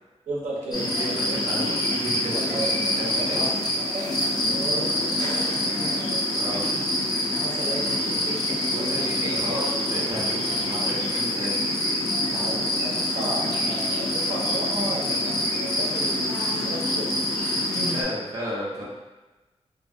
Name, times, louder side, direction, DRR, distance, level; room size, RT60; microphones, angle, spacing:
voice 1, 0.3-1.1 2.3-2.7 3.1-3.5 3.8-4.0 4.4-6.2 7.3-9.2 12.2-17.2 17.7-18.1, right 1 dB, 85° right, -5 dB, 0.7 m, -34 dB
sound 1, 0.7-18.0, left 1 dB, 35° left, 0.5 m, -26 dB
voice 2, 1.0-3.5 6.4-6.6 8.7-11.5 17.9-18.8, equal, 30° right, -6 dB, 0.6 m, -33 dB
2.6 x 2.4 x 2.5 m, 1.2 s
wide cardioid pair, 145°, 12 cm